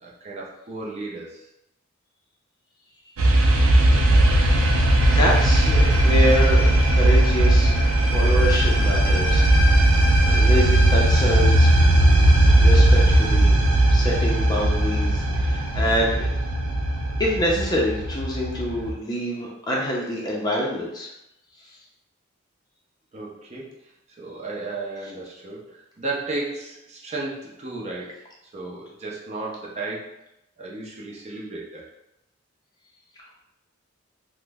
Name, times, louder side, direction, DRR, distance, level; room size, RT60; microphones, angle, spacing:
voice 1, 0.0-1.4 23.1-23.7 24.2-28.2 28.5-30.1 30.6-31.9, right 2 dB, 30° right, -4 dB, 0.5 m, -34 dB
sound 1, 3.2-18.9, right 1 dB, 80° right, 0.5 m, -18 dB
voice 2, 5.1-9.4 10.3-11.7 12.6-13.6 13.9-16.3 17.2-21.1, equal, 20° left, -3 dB, 0.5 m, -26 dB
2.9 x 2.1 x 3.4 m, 0.86 s
head